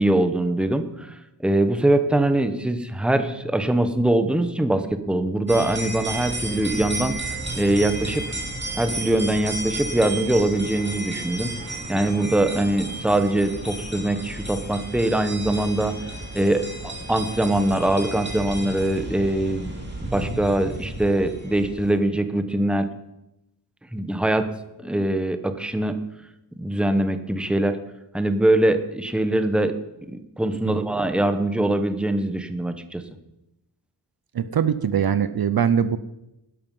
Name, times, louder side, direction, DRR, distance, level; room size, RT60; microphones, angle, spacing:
voice 1, 0.0-7.2 7.6-8.2 8.8-11.5 11.9-15.9 16.3-19.7 20.1-22.9 23.9-24.5 24.8-26.0 26.6-27.8 28.1-29.7 30.1-33.0, right 1 dB, ahead, 9 dB, 0.8 m, -22 dB
sound 1, 5.5-21.9, right 2 dB, 25° right, 2.6 m, -33 dB
voice 2, 34.3-36.0, right 8 dB, 55° right, 13 dB, 0.6 m, -22 dB
12.0 x 11.0 x 5.5 m, 0.91 s
wide cardioid pair, 145°, 43 cm